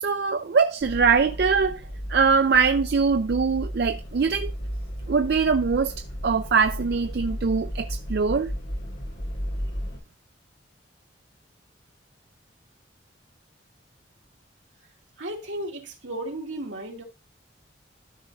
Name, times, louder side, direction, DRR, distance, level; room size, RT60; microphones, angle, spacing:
voice 1, 0.0-1.8 2.1-4.5 5.1-8.5, right 5 dB, 55° right, 0.4 m, -22 dB
sound 1, 0.8-10.0, equal, 65° left, 2.2 m, -34 dB
voice 2, 15.2-17.0, right 1 dB, 80° right, 2.3 m, -34 dB
13.5 x 5.1 x 2.7 m
head